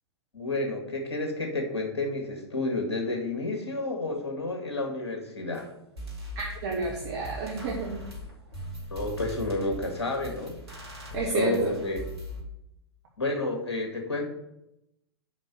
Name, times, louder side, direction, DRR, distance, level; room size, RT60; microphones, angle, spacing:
voice 1, 0.3-5.7 8.9-10.6 11.1-12.0 13.2-14.2, left 2 dB, 70° left, 1 dB, 1.9 m, -30 dB
sound 1, 5.5-5.6 6.0-12.4, equal, 70° right, 2.7 m, -40 dB
voice 2, 6.3-8.0 11.1-11.8, right 3 dB, 45° right, -2 dB, 1.3 m, -31 dB
5.4 x 5.2 x 6.5 m, 0.85 s
figure-of-eight pair, 100°, 14 cm